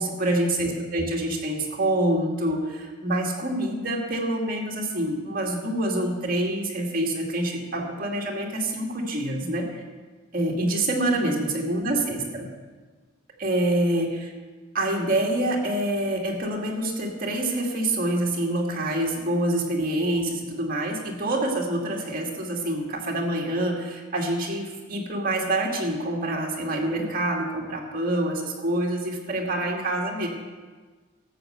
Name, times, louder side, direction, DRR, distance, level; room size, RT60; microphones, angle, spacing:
voice 1, 0.0-9.8 10.3-12.5 13.4-14.3 14.7-30.3, right 1 dB, 45° right, 0 dB, 2.1 m, -26 dB
13.0 x 6.7 x 7.8 m, 1.4 s
head